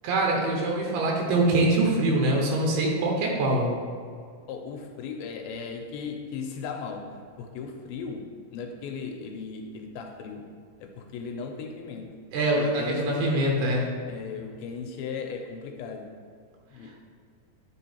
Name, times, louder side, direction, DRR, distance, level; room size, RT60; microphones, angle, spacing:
voice 1, 0.0-3.7 12.3-13.9, right 2 dB, 85° right, -1 dB, 2.9 m, -24 dB
voice 2, 4.5-10.5 10.8-12.1 12.5-13.4 14.1-16.1 16.7-16.9, left 5 dB, 85° left, 3 dB, 2.4 m, -37 dB
10.5 x 3.8 x 4.3 m, 2.1 s
omnidirectional pair, 4.4 m